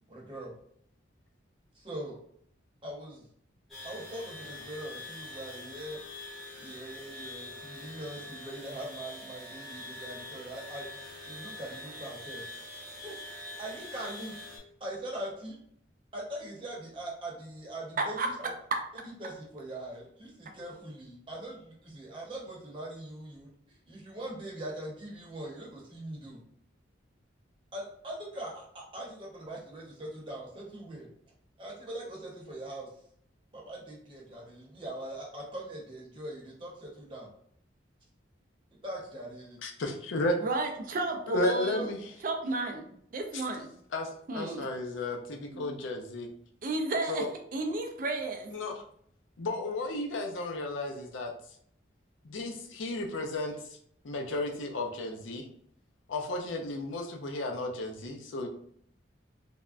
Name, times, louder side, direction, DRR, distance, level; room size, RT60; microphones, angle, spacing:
voice 1, 0.1-0.5 1.7-2.2 2.8-3.3 3.8-6.0 6.6-12.5 13.0-13.1 13.6-14.3 14.8-15.6 16.1-18.5 19.0-26.4 27.7-31.1 31.6-32.9 33.5-37.3 38.8-39.6, right 1 dB, 25° right, -4 dB, 0.8 m, -42 dB
sound 1, 3.7-14.6, left 2 dB, ahead, 0.7 m, -44 dB
voice 2, 39.6-40.4 41.3-42.2 43.3-43.4 43.9-46.3 47.1-47.3 48.5-48.8 49.4-51.3 52.2-53.8 54.0-55.5 56.1-58.5, left 2 dB, 85° left, 3 dB, 0.5 m, -33 dB
voice 3, 40.4-41.8 42.2-43.7 44.3-44.7 45.5-45.7 46.6-47.2 47.5-48.5, right 2 dB, 45° right, 3 dB, 0.4 m, -33 dB
3.3 x 2.1 x 2.4 m, 0.66 s
head